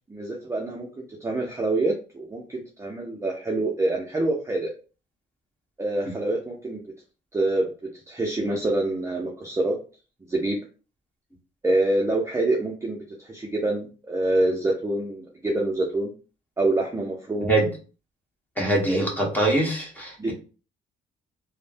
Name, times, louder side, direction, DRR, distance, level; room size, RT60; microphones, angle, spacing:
voice 1, 0.1-4.7 5.8-6.8 7.3-9.8 10.3-10.6 11.6-16.1 16.6-17.5 18.9-19.1 20.2-20.3, right 2 dB, 15° right, 0 dB, 0.5 m, -26 dB
voice 2, 18.6-20.3, right 2 dB, 10° left, -2 dB, 1.2 m, -23 dB
3.1 x 2.1 x 2.5 m, 0.35 s
cardioid pair, 90°, 20 cm